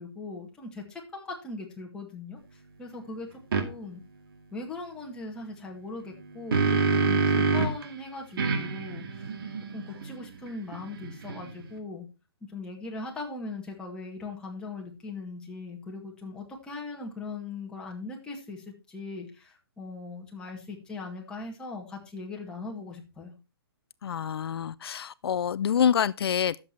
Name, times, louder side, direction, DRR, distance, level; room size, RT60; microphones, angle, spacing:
voice 1, 0.0-3.3 3.5-4.0 4.5-9.3 9.7-12.1 12.5-23.3, left 3 dB, 5° left, 1.9 m, -39 dB
sound 1, 3.5-3.7 6.1-7.9 8.4-11.7, right 4 dB, 60° right, 2.3 m, -27 dB
voice 2, 24.0-26.6, left 8 dB, 75° left, 0.4 m, -26 dB
10.5 x 7.4 x 4.5 m
hypercardioid pair, 160°, 13 cm